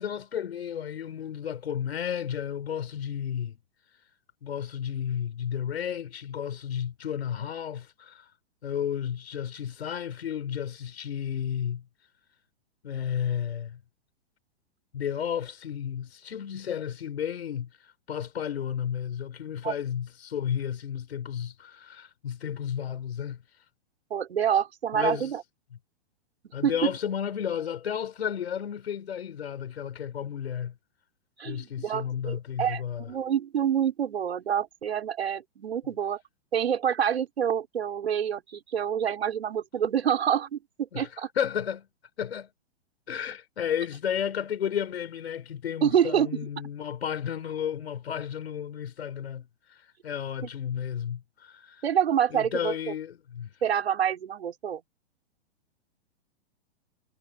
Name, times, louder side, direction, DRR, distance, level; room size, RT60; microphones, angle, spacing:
voice 1, 0.0-3.6 4.4-8.3 8.6-11.8 12.8-13.8 14.9-23.4 24.9-25.3 26.5-30.7 31.4-33.1 40.9-41.9 42.2-42.5 43.1-51.8 52.3-53.5, left 9 dB, 75° left, 5.4 m, -33 dB
voice 2, 24.1-25.4 26.6-26.9 31.4-36.2 36.5-41.3 45.8-46.5 50.4-50.5 51.8-52.9 53.6-54.8, right 9 dB, 75° right, 6.5 m, -27 dB
hypercardioid pair, 120°, 32 cm